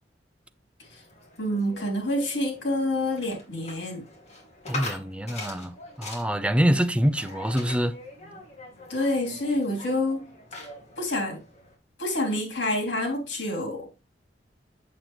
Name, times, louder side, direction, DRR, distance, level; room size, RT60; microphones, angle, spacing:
sound 1, 0.8-11.8, left 2 dB, 40° left, 2.3 m, -43 dB
voice 1, 1.4-4.0 8.9-10.3 11.0-11.4 12.0-13.9, left 1 dB, 80° left, 3.3 m, -27 dB
voice 2, 4.7-8.0, equal, 5° right, 0.5 m, -25 dB
7.4 x 6.9 x 3.1 m
head